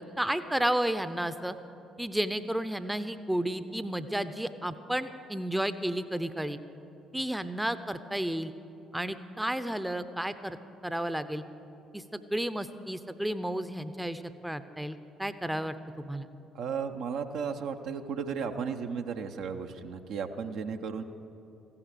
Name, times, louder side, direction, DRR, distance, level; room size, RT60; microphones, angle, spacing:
voice 1, 0.0-1.6 2.0-6.6 7.1-8.5 8.9-10.6 10.8-11.4 11.9-16.3, right 1 dB, 5° right, 12 dB, 0.7 m, -32 dB
voice 2, 16.5-21.0, right 6 dB, 60° right, 5 dB, 0.7 m, -34 dB
15.0 x 11.0 x 6.8 m, 2.9 s
figure-of-eight pair, 50°, 0 cm